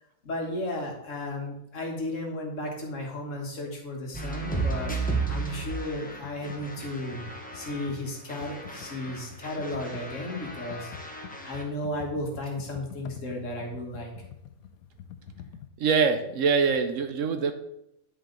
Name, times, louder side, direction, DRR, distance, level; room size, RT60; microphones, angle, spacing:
voice 1, 0.2-5.0 5.3-7.2 7.5-10.9 11.4-14.1, left 1 dB, 60° left, 0 dB, 1.8 m, -34 dB
sound 1, 4.1-8.0 8.3-11.6, right 3 dB, 5° left, 1.0 m, -34 dB
Computer keyboard, 6.2-15.7, left 9 dB, 90° left, 1.1 m, -46 dB
voice 2, 15.8-17.5, right 5 dB, 70° right, 8 dB, 1.0 m, -24 dB
9.9 x 4.9 x 3.9 m, 0.80 s
omnidirectional pair, 1.5 m